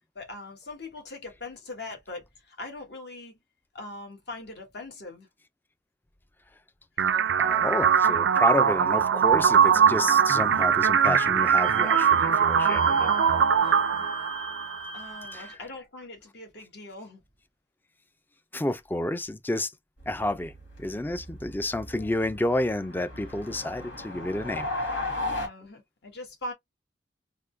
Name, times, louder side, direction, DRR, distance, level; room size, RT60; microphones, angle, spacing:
voice 1, 0.1-3.4 3.7-5.3 7.0-7.1 13.6-14.0 14.9-17.2 21.9-22.2 23.4-23.7 25.2-26.5, left 2 dB, 65° left, 1.4 m, -41 dB
sound 1, 7.0-14.9, right 7 dB, 85° right, 0.4 m, -21 dB
voice 2, 7.4-13.2 15.3-15.6 18.5-19.7 20.1-20.5 20.8-24.9, left 1 dB, 10° left, 0.4 m, -30 dB
Wind instrument woodwind instrument, 11.6-15.6, right 2 dB, 35° left, 1.7 m, -39 dB
sound 2, 20.0-25.5, left 2 dB, 90° left, 1.8 m, -36 dB
3.8 x 2.2 x 3.2 m
head